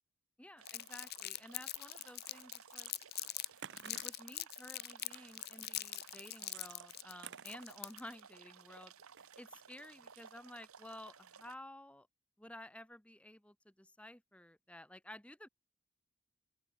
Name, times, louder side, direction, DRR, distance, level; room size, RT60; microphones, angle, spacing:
voice 1, 0.4-2.9 3.7-8.9 9.4-12.1 12.4-15.5, left 1 dB, 5° left, 1.3 m, -53 dB
sound 1, 0.6-11.5, right 7 dB, 85° right, 1.2 m, -58 dB
Crumpling crinkling, 0.7-3.5 3.8-8.2, left 15 dB, 45° left, 1.1 m, -43 dB
sound 2, 2.0-3.0 3.2-4.2 5.0-5.3 5.8-8.3 9.1-9.7 10.1-10.5, right 9 dB, 55° right, 0.9 m, -54 dB
open air
head